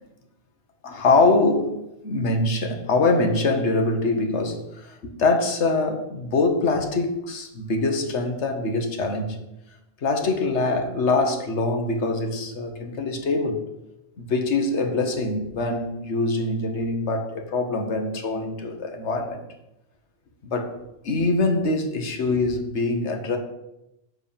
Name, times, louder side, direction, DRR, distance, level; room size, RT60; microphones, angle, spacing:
voice 1, 0.8-9.4 10.0-13.7 14.2-19.4 20.4-20.7 21.0-23.4, left 3 dB, 90° left, 4 dB, 1.4 m, -24 dB
7.8 x 3.9 x 6.8 m, 0.90 s
omnidirectional pair, 1.1 m